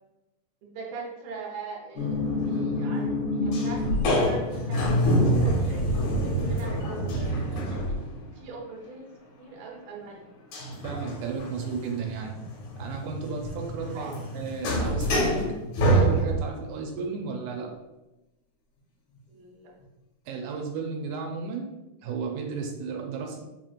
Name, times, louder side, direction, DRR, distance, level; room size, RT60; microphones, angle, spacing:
voice 1, 0.6-5.9 6.2-8.0 8.3-9.0 9.4-10.3 13.9-14.3 19.3-19.7, right 4 dB, 70° right, -2 dB, 1.9 m, -42 dB
sound 1, 2.0-8.3 10.5-16.6, equal, 85° left, 2.3 m, -26 dB
voice 2, 10.8-12.4 12.8-15.6 15.8-17.7 20.3-21.7 22.0-23.4, right 5 dB, 90° right, 1 dB, 2.0 m, -34 dB
5.1 x 3.0 x 2.4 m, 0.97 s
omnidirectional pair, 3.3 m